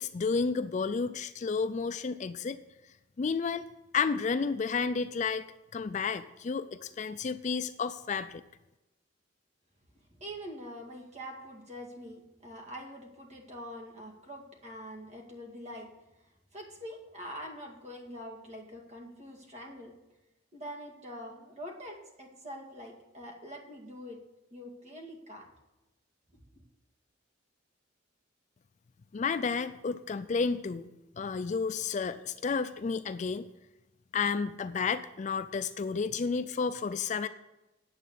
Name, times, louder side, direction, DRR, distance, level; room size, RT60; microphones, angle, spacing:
voice 1, 0.0-2.6 3.2-3.6 3.9-5.4 5.7-8.4 29.1-30.8 31.2-33.5 34.1-37.3, left 5 dB, 40° left, 12 dB, 0.4 m, -31 dB
voice 2, 10.2-15.9 16.5-19.9 20.5-24.2 24.5-25.5, equal, 35° right, 1 dB, 2.0 m, -44 dB
9.4 x 7.7 x 6.8 m, 0.98 s
head